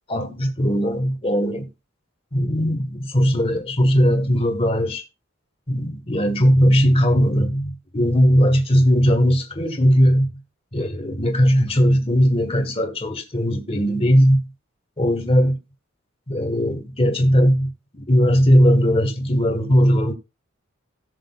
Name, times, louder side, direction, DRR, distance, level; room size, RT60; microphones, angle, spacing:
voice 1, 0.1-1.7 2.3-5.0 5.7-10.4 10.7-14.5 15.0-15.6 16.3-20.1, equal, 30° left, 1.4 m, -18 dB
17.5 x 6.4 x 2.4 m
head